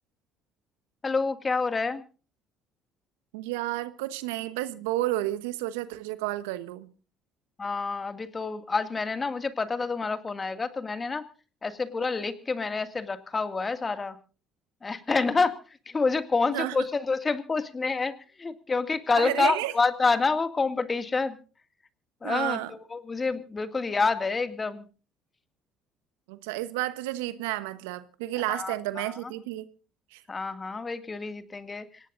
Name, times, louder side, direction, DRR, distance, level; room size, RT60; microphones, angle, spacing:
voice 1, 1.0-2.0 7.6-11.2 11.6-14.2 14.8-15.5 15.9-21.4 22.2-22.6 22.9-24.8 28.5-29.1 30.3-31.9, left 4 dB, 30° left, 2.1 m, -28 dB
voice 2, 3.3-6.9 16.5-16.8 19.2-19.7 22.2-22.7 26.3-29.7 30.1-30.2, right 16 dB, 80° right, 1.1 m, -31 dB
26.0 x 18.0 x 2.6 m
hypercardioid pair, 60°, 0 cm